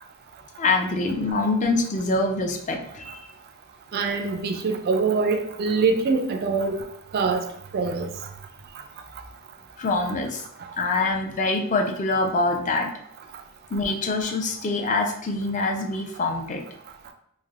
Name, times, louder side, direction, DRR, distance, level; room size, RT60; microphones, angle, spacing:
voice 1, 0.6-3.3 9.8-10.4 10.8-12.9 13.7-16.6, left 3 dB, 35° left, 3 dB, 0.4 m, -25 dB
voice 2, 3.9-6.8 7.1-7.5 7.7-8.1, right 4 dB, 45° right, 5 dB, 0.3 m, -24 dB
3.2 x 2.5 x 2.4 m, 0.71 s
head